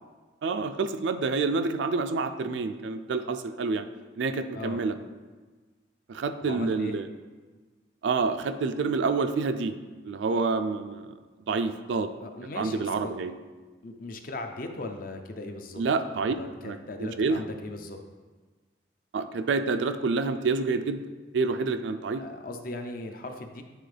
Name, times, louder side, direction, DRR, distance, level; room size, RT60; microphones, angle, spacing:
voice 1, 0.4-3.9 4.1-4.9 6.1-7.1 8.0-9.7 10.0-11.1 11.5-12.1 12.5-13.3 15.8-16.3 16.6-17.4 19.1-21.0 21.3-22.2, right 4 dB, 75° right, 9 dB, 0.4 m, -28 dB
voice 2, 6.4-7.0 12.2-13.1 13.8-15.8 16.4-18.0 22.2-23.6, left 2 dB, 50° left, 5 dB, 0.6 m, -38 dB
9.1 x 3.9 x 3.3 m, 1.4 s
head